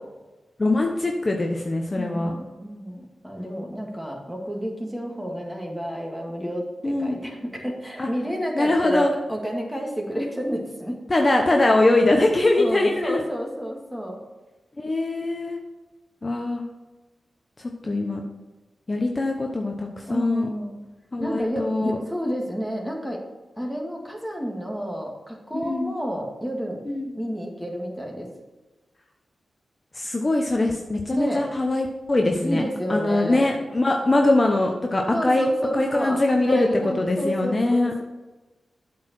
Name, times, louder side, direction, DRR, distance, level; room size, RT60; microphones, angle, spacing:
voice 1, 0.6-2.3 6.8-7.2 8.0-8.1 8.5-9.1 11.1-13.2 14.8-15.6 16.2-16.6 17.6-18.2 18.9-20.5 21.1-22.0 25.5-25.9 26.9-27.1 29.9-32.6 32.9-35.5 35.7-36.7 36.9-37.9, left 2 dB, 35° left, 2 dB, 1.0 m, -22 dB
voice 2, 1.9-11.0 12.6-14.2 20.0-20.8 21.2-23.2 23.6-26.8 27.1-28.3 31.1-31.5 32.4-33.5 35.1-36.2 36.5-38.0, equal, 5° right, -1 dB, 2.2 m, -30 dB
8.2 x 4.8 x 6.2 m, 1.2 s
cardioid pair, 50°, 0 cm